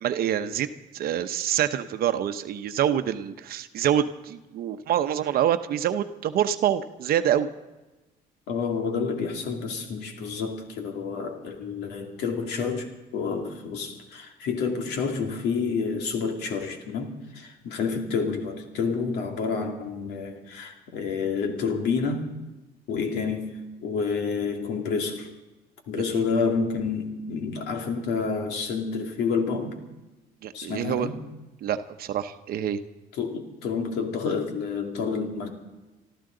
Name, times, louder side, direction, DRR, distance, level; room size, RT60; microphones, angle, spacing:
voice 1, 0.0-7.5 26.1-26.2 30.4-31.1 31.6-32.8, right 10 dB, 60° right, 9 dB, 0.8 m, -26 dB
voice 2, 8.5-22.3 22.9-25.3 25.9-29.8 30.5-31.2 33.2-35.5, left 5 dB, 80° left, 3 dB, 2.3 m, -29 dB
25.0 x 13.5 x 3.9 m, 1.1 s
cardioid pair, 110°, 17 cm